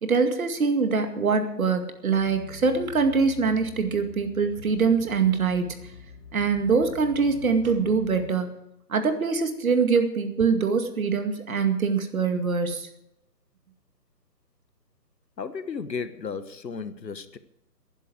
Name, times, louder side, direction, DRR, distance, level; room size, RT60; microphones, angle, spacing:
voice 1, 0.0-5.8 6.3-8.5 8.9-12.9, right 5 dB, 55° right, 2.2 m, -24 dB
sound 1, 2.1-8.3, left 6 dB, 60° left, 6.1 m, -45 dB
voice 2, 15.4-17.4, left 5 dB, 85° left, 1.4 m, -34 dB
12.0 x 10.5 x 7.7 m
hypercardioid pair, 160°, 49 cm